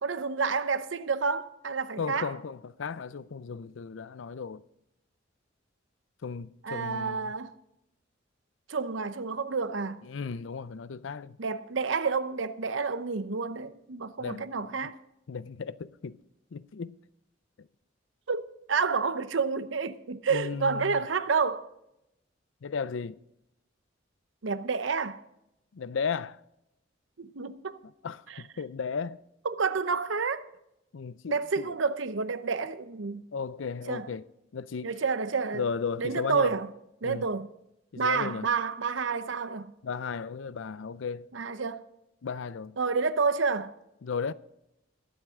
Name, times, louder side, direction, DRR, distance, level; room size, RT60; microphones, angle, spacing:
voice 1, 0.0-2.3 6.6-7.5 8.7-10.0 11.4-15.0 18.3-21.7 24.4-25.2 27.2-27.8 28.3-28.4 29.4-30.4 31.3-33.2 33.9-34.1 34.8-35.6 36.0-36.7 37.0-37.5 38.0-39.7 41.3-41.8 42.8-43.7, right 5 dB, 80° right, 0.7 m, -29 dB
voice 2, 2.0-4.6 6.2-7.3 10.1-11.4 14.2-14.7 15.3-16.2 16.5-17.0 17.6-17.7 20.3-21.0 22.6-23.2 25.7-26.4 28.0-29.2 30.9-31.8 33.3-34.2 34.5-34.9 35.5-36.5 37.0-37.3 37.9-38.6 39.8-41.3 42.2-42.8 44.0-44.3, left 5 dB, 85° left, 0.5 m, -35 dB
22.5 x 7.9 x 3.7 m
head